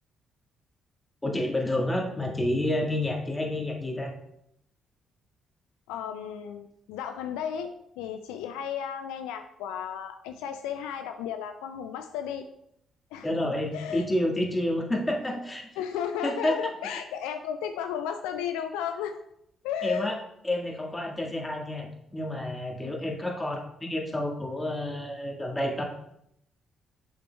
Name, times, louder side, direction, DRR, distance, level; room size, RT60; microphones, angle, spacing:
voice 1, 1.2-4.1 13.2-15.7 16.2-16.5 16.9-17.0 19.8-20.2 20.4-25.8, left 1 dB, 20° left, 0 dB, 1.8 m, -29 dB
voice 2, 5.9-7.7 8.0-12.5 13.1-13.3 13.7-14.1 15.8-19.2 19.6-20.2 22.8-22.9, left 8 dB, 75° left, 7 dB, 0.3 m, -34 dB
7.6 x 7.0 x 2.3 m, 0.76 s
hypercardioid pair, 45°, 0 cm